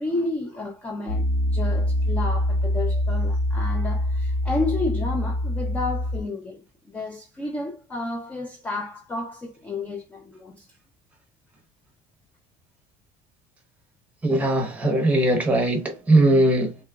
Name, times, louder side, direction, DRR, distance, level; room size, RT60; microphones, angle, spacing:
voice 1, 0.0-10.7, left 2 dB, 10° left, 0.3 m, -31 dB
Piano, 1.1-6.2, left 1 dB, 85° left, 1.2 m, -24 dB
voice 2, 14.2-16.8, right 1 dB, 10° right, 0.8 m, -20 dB
3.8 x 2.9 x 2.2 m
cardioid pair, 170°, 16 cm